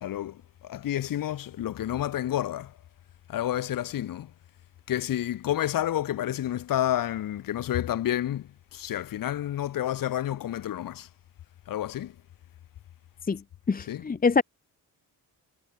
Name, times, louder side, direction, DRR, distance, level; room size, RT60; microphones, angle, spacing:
voice 1, 0.0-2.8 3.3-4.3 4.9-11.1 11.7-12.1 13.9-14.0, left 12 dB, 60° left, 0.7 m, -30 dB
voice 2, 13.7-14.4, left 4 dB, 20° left, 0.7 m, -24 dB
cardioid pair, 65°, 39 cm